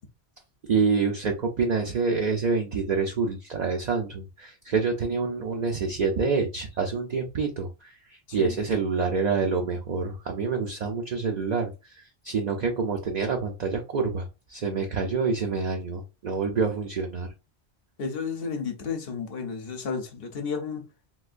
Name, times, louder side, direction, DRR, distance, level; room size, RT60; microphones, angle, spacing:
voice 1, 0.7-17.3, right 4 dB, 50° right, 0.6 m, -27 dB
voice 2, 18.0-20.9, left 5 dB, 60° left, 0.9 m, -32 dB
3.8 x 2.6 x 2.5 m
omnidirectional pair, 1.1 m